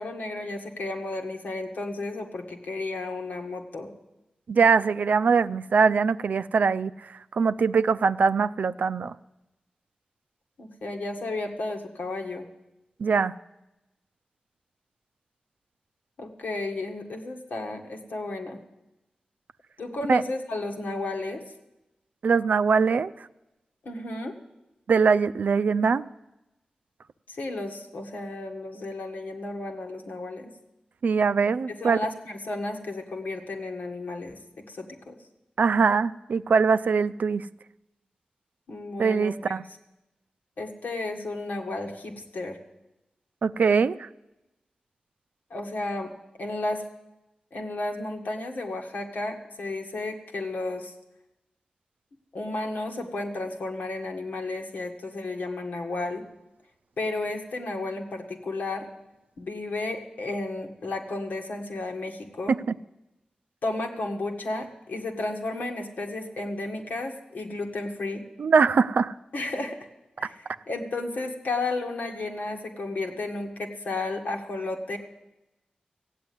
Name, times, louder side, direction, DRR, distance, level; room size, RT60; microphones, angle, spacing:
voice 1, 0.0-3.9 10.6-12.5 16.2-18.6 19.8-21.4 23.9-24.4 27.3-30.5 31.8-35.2 38.7-39.6 40.6-42.6 45.5-46.1 46.4-46.8 47.5-50.9 52.3-56.2 57.0-58.9 59.4-62.6 63.6-68.3 69.3-69.8 70.2-75.0, left 2 dB, 80° left, 3 dB, 1.7 m, -33 dB
voice 2, 4.5-6.9 7.3-9.1 13.0-13.3 20.1-20.2 22.2-23.1 24.9-26.0 31.0-32.0 35.6-37.5 39.0-39.6 43.4-44.1 62.5-62.7 68.4-69.1, right 5 dB, 75° right, 13 dB, 0.4 m, -22 dB
15.5 x 8.3 x 9.5 m, 0.96 s
cardioid pair, 55°, 3 cm